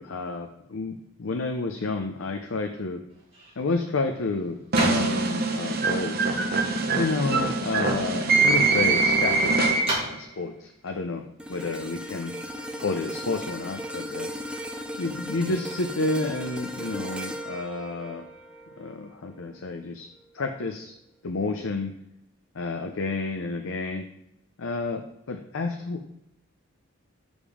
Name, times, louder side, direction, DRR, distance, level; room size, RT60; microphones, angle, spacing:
voice 1, 0.0-3.0 3.6-6.2 7.0-9.5 10.0-11.2 11.5-12.3 12.8-14.3 15.0-18.3 18.8-20.1 20.3-20.9 21.2-21.9 22.5-24.1 24.6-25.0 25.3-26.1, left 3 dB, 75° left, 5 dB, 0.6 m, -30 dB
sound 1, 3.1-12.3, right 1 dB, 25° right, 2.5 m, -38 dB
sound 2, 4.7-10.2, right 3 dB, 50° right, 0.8 m, -23 dB
sound 3, 11.4-19.7 20.2-20.4, equal, 5° right, 0.5 m, -37 dB
7.2 x 5.2 x 5.0 m, 0.82 s
head